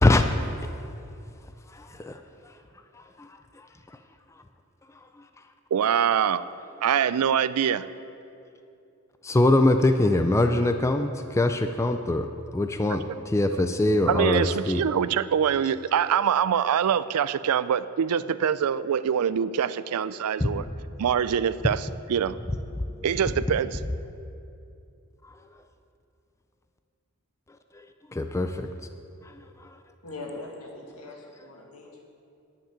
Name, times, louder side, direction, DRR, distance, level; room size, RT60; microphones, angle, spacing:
voice 1, 1.7-2.2 9.2-12.3 12.5-14.8 20.4-20.7 28.1-28.7, left 2 dB, 15° left, 7 dB, 0.3 m, -22 dB
voice 2, 5.7-6.4 6.8-7.9 13.5-13.6 14.1-20.7 21.0-22.4 23.0-23.8, right 8 dB, 85° right, 15 dB, 0.4 m, -24 dB
voice 3, 30.0-32.0, left 2 dB, 80° left, -1 dB, 2.0 m, -41 dB
10.0 x 6.0 x 8.7 m, 2.6 s
head